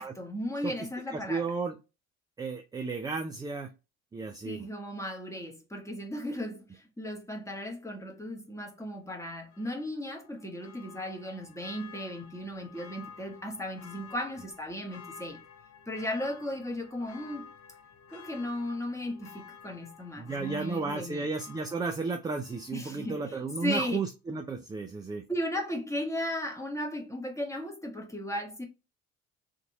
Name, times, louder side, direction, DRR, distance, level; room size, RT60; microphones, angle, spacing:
voice 1, 0.0-1.5 4.4-15.4 15.9-17.5 18.1-21.3 22.7-24.0 25.3-28.7, left 1 dB, 5° left, 1.0 m, -36 dB
voice 2, 1.1-1.7 2.4-3.7 4.1-4.6 20.2-25.2, right 4 dB, 10° right, 0.4 m, -33 dB
Church bell, 9.5-23.1 23.5-23.6, left 7 dB, 35° left, 0.6 m, -52 dB
2.9 x 2.6 x 2.6 m
figure-of-eight pair, 55°, 41 cm